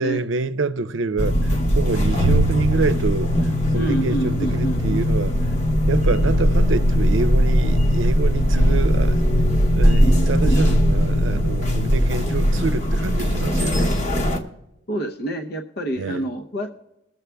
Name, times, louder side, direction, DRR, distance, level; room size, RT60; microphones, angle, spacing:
voice 1, 0.0-1.4 1.8-3.3 3.7-5.3 5.9-9.2 9.7-13.9 16.0-16.2, right 3 dB, 80° right, 0.6 m, -26 dB
sound 1, 1.2-14.4, equal, 40° left, 1.1 m, -19 dB
voice 2, 3.7-5.2 14.9-16.7, right 2 dB, 55° left, 0.8 m, -27 dB
21.0 x 7.3 x 3.4 m
head